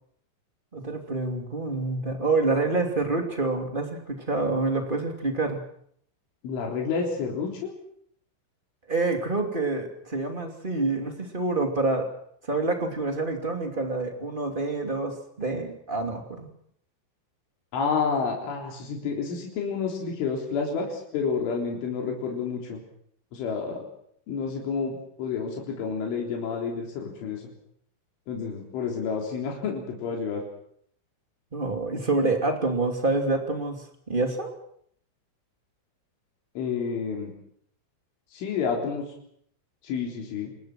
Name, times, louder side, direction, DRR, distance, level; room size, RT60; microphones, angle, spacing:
voice 1, 0.7-5.6 8.9-12.1 12.4-16.5 31.5-34.5, right 3 dB, 15° right, 4 dB, 1.7 m, -27 dB
voice 2, 6.4-7.7 17.7-22.8 23.3-23.8 24.3-27.4 28.3-30.4 36.6-37.3 38.3-39.1 39.8-40.5, left 5 dB, 85° left, 0 dB, 6.2 m, -29 dB
28.5 x 20.5 x 6.2 m, 0.67 s
omnidirectional pair, 5.4 m